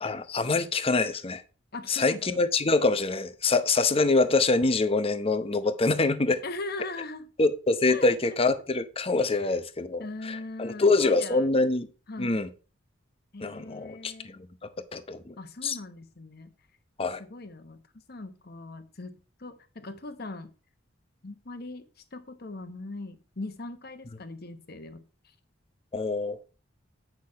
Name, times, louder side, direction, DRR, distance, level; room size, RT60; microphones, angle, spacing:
voice 1, 0.0-1.4 1.9-6.4 7.4-11.9 12.2-12.5 13.4-14.5 14.9-15.8 17.0-17.2 25.9-26.4, left 3 dB, 30° left, 0.8 m, -25 dB
voice 2, 1.7-2.4 6.4-7.3 7.9-8.1 9.3-9.4 10.0-11.5 12.1-12.5 13.3-14.3 15.4-16.5 17.0-17.8 18.1-20.5 21.2-21.8 22.1-25.0, left 2 dB, 55° left, 1.1 m, -40 dB
8.7 x 6.1 x 4.7 m
head